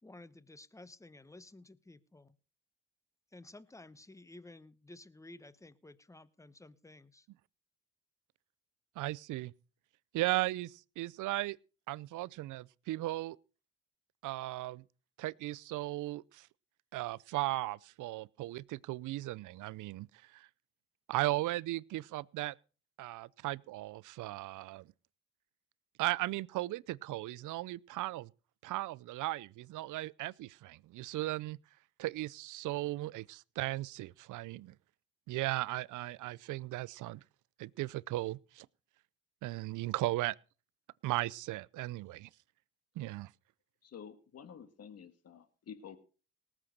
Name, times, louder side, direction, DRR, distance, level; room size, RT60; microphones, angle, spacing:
voice 1, 0.0-2.4 3.3-7.3, left 2 dB, 10° left, 1.0 m, -54 dB
voice 2, 9.0-9.5 10.1-11.6 11.9-13.4 14.2-14.8 15.2-16.5 16.9-20.1 20.3-20.5 21.1-22.5 23.0-24.9 26.0-28.3 28.6-31.6 32.0-34.7 35.3-37.2 37.6-38.7 39.4-40.4 41.0-42.3 43.0-43.3, right 17 dB, 80° right, 0.6 m, -36 dB
voice 3, 43.8-46.0, left 7 dB, 55° left, 1.8 m, -50 dB
19.0 x 7.4 x 6.5 m
cardioid pair, 90°, 30 cm